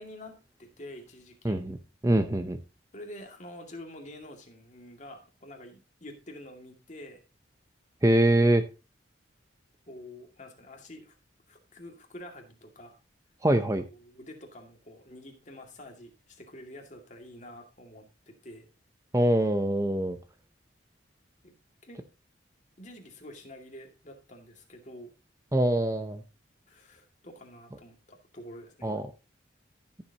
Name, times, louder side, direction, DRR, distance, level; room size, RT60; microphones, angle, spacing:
voice 1, 0.0-1.7 2.9-7.2 9.9-11.1 11.5-13.0 13.8-18.7 21.4-21.5 21.8-22.0 22.8-25.1 26.7-28.9, left 1 dB, 40° left, 3 dB, 2.2 m, -47 dB
voice 2, 1.4-1.8 2.0-2.6 8.0-8.6 13.4-13.8 19.1-20.2 25.5-26.2 28.8-29.1, right 1 dB, 15° right, 9 dB, 0.6 m, -24 dB
14.5 x 7.1 x 2.9 m, 0.31 s
head